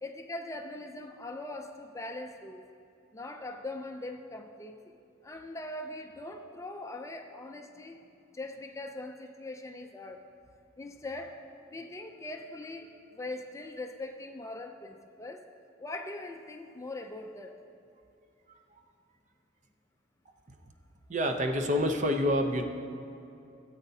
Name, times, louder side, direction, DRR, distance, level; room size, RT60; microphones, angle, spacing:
voice 1, 0.0-2.6 3.1-4.8 5.2-8.0 8.3-10.2 10.8-11.4 11.7-15.5 15.8-17.5, left 2 dB, 15° left, 4 dB, 0.4 m, -41 dB
voice 2, 21.1-22.6, equal, 40° right, 5 dB, 0.7 m, -27 dB
17.5 x 8.0 x 2.8 m, 2.7 s
head